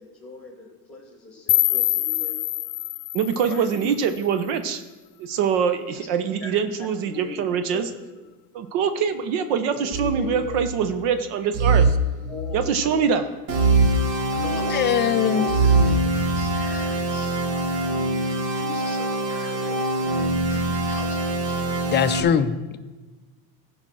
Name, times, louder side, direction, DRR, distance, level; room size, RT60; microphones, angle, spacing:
voice 1, 0.0-2.4 3.5-3.9 6.4-6.5 6.8-7.9 9.7-10.6 11.8-11.9 12.2-13.3 14.0-17.4 18.5-22.0, left 3 dB, ahead, 2 dB, 2.5 m, -40 dB
sound 1, 1.5-4.5, left 20 dB, 75° left, 0.6 m, -25 dB
voice 2, 3.1-4.8 5.2-7.9 8.5-11.9 12.5-13.2, right 7 dB, 70° right, 10 dB, 1.0 m, -24 dB
sound 2, 9.9-10.9 11.5-12.8 13.5-14.8 15.5-16.6, right 3 dB, 30° right, 0.6 m, -22 dB
sound 3, 13.5-22.2, right 1 dB, 50° right, 1.8 m, -25 dB
voice 3, 14.7-15.5 21.9-22.8, left 9 dB, 25° left, 10 dB, 0.3 m, -21 dB
14.5 x 5.3 x 6.1 m, 1.2 s
cardioid pair, 130°, 47 cm